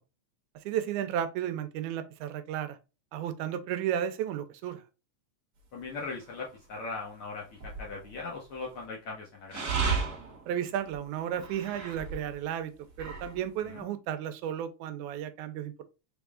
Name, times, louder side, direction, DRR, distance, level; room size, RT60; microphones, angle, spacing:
voice 1, 0.7-2.8 3.1-4.8 10.5-12.7 13.0-15.8, right 10 dB, 90° right, 2.0 m, -33 dB
voice 2, 5.7-9.7 13.6-13.8, left 4 dB, 70° left, 1.3 m, -39 dB
sound 1, 6.0-6.5 7.5-8.3 9.5-12.3 12.7-13.4, right 5 dB, 55° right, 1.1 m, -34 dB
4.7 x 3.5 x 2.3 m
omnidirectional pair, 3.4 m